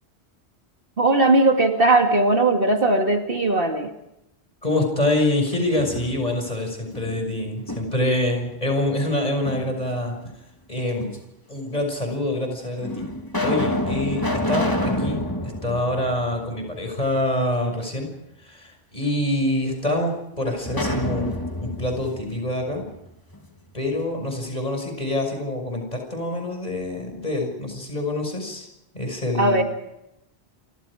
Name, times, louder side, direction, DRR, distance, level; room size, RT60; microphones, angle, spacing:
voice 1, 1.0-3.9 29.4-29.6, right 2 dB, 55° right, 3 dB, 2.6 m, -18 dB
voice 2, 4.6-10.2 10.7-11.1 11.5-13.1 13.4-14.2 14.5-15.2 15.6-18.1 18.4-21.3 21.6-22.9 23.7-28.7 28.9-29.6, left 1 dB, 40° left, 3 dB, 6.3 m, -25 dB
sound 1, 5.5-6.5 6.9-8.2 9.4-10.2 11.1-11.2 12.1-12.2 12.8-16.9 17.2-17.3 20.6-23.4, left 1 dB, 20° left, 2.7 m, -28 dB
28.5 x 25.0 x 5.0 m, 0.88 s
omnidirectional pair, 1.1 m